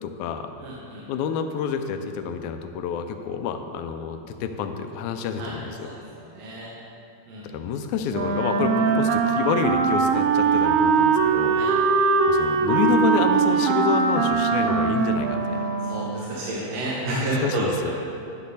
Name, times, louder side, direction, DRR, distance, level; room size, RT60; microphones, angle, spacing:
voice 1, 0.0-0.5 1.1-5.9 7.4-11.6 12.3-15.6 17.1-17.9, left 6 dB, 85° left, 7 dB, 1.9 m, -28 dB
voice 2, 0.6-1.0 5.4-5.5 5.8-6.7 7.3-7.4 11.5-11.7 15.8-17.9, right 2 dB, 65° right, -6 dB, 2.1 m, -30 dB
Wind instrument woodwind instrument, 8.1-16.4, right 5 dB, 90° right, 2.0 m, -21 dB
10.0 x 6.2 x 4.1 m, 2.7 s
omnidirectional pair, 3.4 m